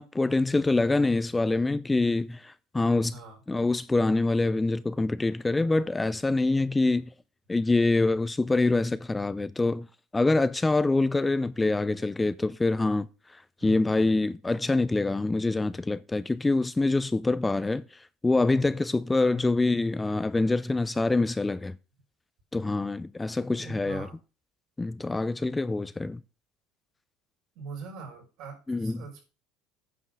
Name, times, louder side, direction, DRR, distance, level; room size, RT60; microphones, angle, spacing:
voice 1, 0.0-3.2 3.5-7.1 7.5-9.9 10.1-21.8 22.5-24.1 24.8-26.2 28.7-29.0, left 2 dB, 15° left, 0.5 m, -25 dB
voice 2, 3.1-3.4 13.6-13.9 19.3-19.5 23.6-24.2 27.6-29.2, right 4 dB, 70° right, 5.4 m, -43 dB
9.4 x 5.6 x 6.4 m
supercardioid pair, 90°, 0 cm